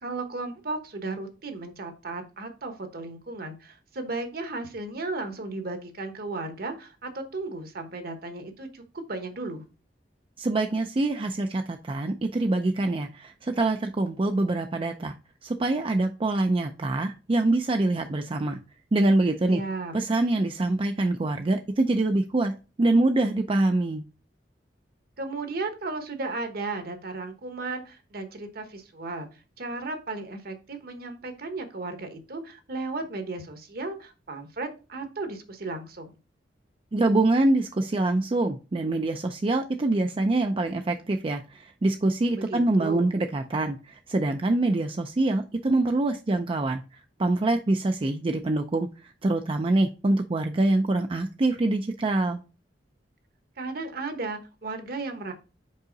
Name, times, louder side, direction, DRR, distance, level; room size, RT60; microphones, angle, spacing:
voice 1, 0.0-9.6 19.5-19.9 25.2-29.3 29.6-36.1 42.4-43.1 53.6-55.3, right 3 dB, 60° right, 7 dB, 1.1 m, -35 dB
voice 2, 10.4-15.1 15.4-18.6 18.9-19.6 19.9-22.5 22.8-24.0 36.9-52.4, right 2 dB, 30° right, 5 dB, 0.4 m, -25 dB
5.4 x 4.8 x 3.9 m, 0.32 s
head